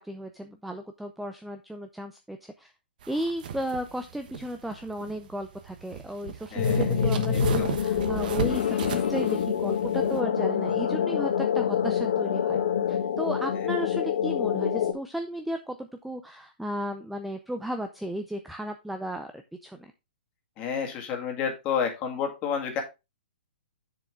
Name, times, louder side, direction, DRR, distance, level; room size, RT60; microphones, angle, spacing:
voice 1, 0.0-2.7 3.1-12.6 12.9-19.9, right 1 dB, ahead, 6 dB, 0.4 m, -35 dB
sound 1, 3.0-10.2, right 8 dB, 55° right, 1.2 m, -36 dB
voice 2, 6.5-6.9 7.3-7.7 20.6-22.8, left 7 dB, 25° left, 3 dB, 2.0 m, -30 dB
sound 2, 6.6-14.9, left 8 dB, 65° left, 1.6 m, -26 dB
7.5 x 6.8 x 3.5 m, 0.26 s
hypercardioid pair, 160°, 6 cm